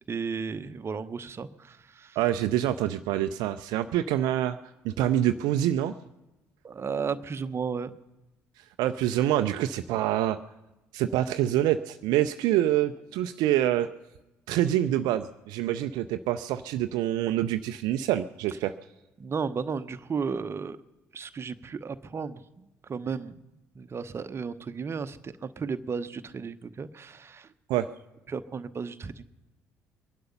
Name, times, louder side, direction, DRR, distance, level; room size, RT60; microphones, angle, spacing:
voice 1, 0.1-2.2 6.6-7.9 19.2-20.8 21.1-23.4 23.7-27.5 28.3-29.3, right 5 dB, 35° right, 12 dB, 0.9 m, -34 dB
voice 2, 2.2-4.6 4.8-5.9 8.8-10.4 10.9-13.9 14.5-18.7 27.7-27.9, right 12 dB, 60° right, 10 dB, 0.5 m, -26 dB
22.5 x 11.5 x 5.5 m, 1.0 s
figure-of-eight pair, 45°, 8 cm